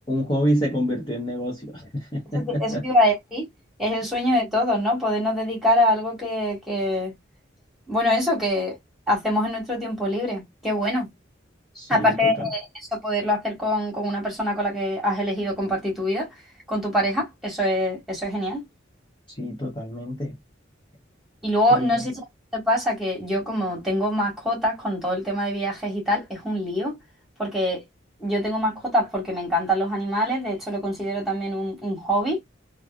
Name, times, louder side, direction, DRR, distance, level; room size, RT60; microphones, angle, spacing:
voice 1, 0.1-2.8 11.7-12.5 19.3-20.3 21.7-22.0, equal, 25° left, 0.8 m, -27 dB
voice 2, 2.3-3.5 3.8-7.1 7.9-8.7 9.1-11.1 11.9-12.6 12.9-16.3 16.7-18.6 21.4-22.2 22.5-27.0 27.4-27.8 28.2-32.4, left 1 dB, ahead, 1.5 m, -24 dB
3.1 x 2.4 x 2.3 m
head